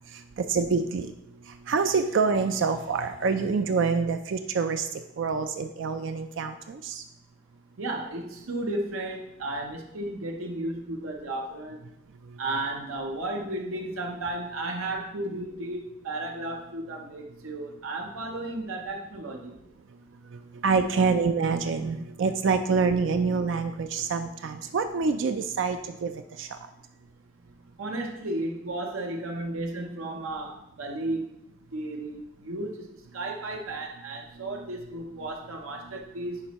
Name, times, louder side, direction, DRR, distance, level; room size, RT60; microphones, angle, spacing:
voice 1, 0.1-1.1 1.4-7.0 12.3-12.4 20.3-26.6, right 4 dB, 60° right, 7 dB, 0.4 m, -27 dB
voice 2, 7.8-11.8 12.4-19.6 27.8-31.3 31.7-32.9 33.1-36.4, right 2 dB, 80° right, 2 dB, 0.8 m, -34 dB
9.8 x 4.2 x 3.0 m, 0.84 s
head